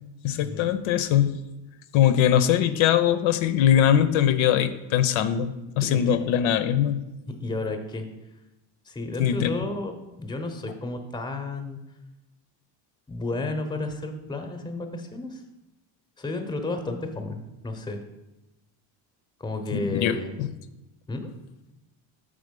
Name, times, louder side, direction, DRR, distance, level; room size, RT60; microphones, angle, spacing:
voice 1, 0.2-1.4 1.9-7.1 9.2-9.5 19.7-20.5, left 10 dB, 85° left, 11 dB, 0.6 m, -22 dB
voice 2, 5.7-6.3 7.4-8.1 8.8-9.9 10.2-11.8 13.1-15.4 16.2-18.0 19.4-20.3 21.1-21.3 21.6-21.7, left 2 dB, 10° left, 6 dB, 0.7 m, -32 dB
6.4 x 3.7 x 5.1 m, 0.96 s
cardioid pair, 125°, 46 cm